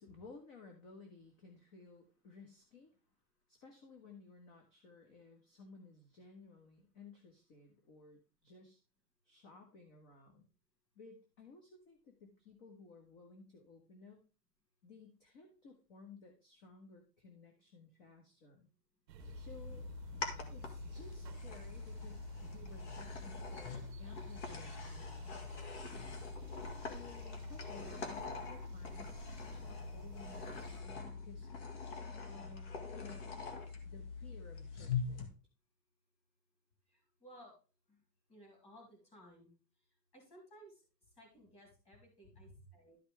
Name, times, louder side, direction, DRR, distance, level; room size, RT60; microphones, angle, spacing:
voice 1, 0.0-3.0 3.5-8.8 9.2-10.5 10.9-14.2 14.8-18.7 19.3-19.9 20.5-25.5 26.8-31.6 32.3-33.4 33.8-35.3 42.5-42.7, left 4 dB, 30° left, 3 dB, 1.5 m, -57 dB
sound 1, 19.1-30.8, right 10 dB, 85° right, 0.9 m, -54 dB
sound 2, 19.2-35.3, left 5 dB, 45° left, 2.0 m, -44 dB
voice 2, 36.9-37.5 37.9-38.0 38.3-39.5 40.1-40.8 41.2-43.0, equal, 10° left, 0 dB, 3.4 m, -59 dB
12.0 x 5.7 x 3.4 m, 0.34 s
hypercardioid pair, 160°, 49 cm